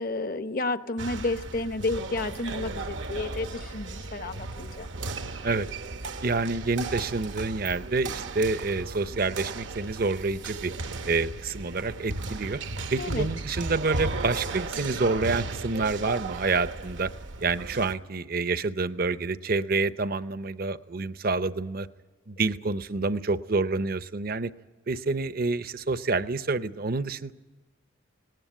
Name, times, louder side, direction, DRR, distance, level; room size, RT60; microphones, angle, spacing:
voice 1, 0.0-4.9 13.0-13.3, left 2 dB, 45° left, 10 dB, 0.9 m, -31 dB
sound 1, 1.0-17.9, right 3 dB, 70° right, 0.9 m, -35 dB
voice 2, 6.2-10.7 11.0-12.6 12.9-17.1 17.4-21.9 22.3-24.5 24.9-27.3, right 3 dB, 50° right, 13 dB, 0.7 m, -28 dB
18.5 x 18.5 x 9.1 m, 1.2 s
head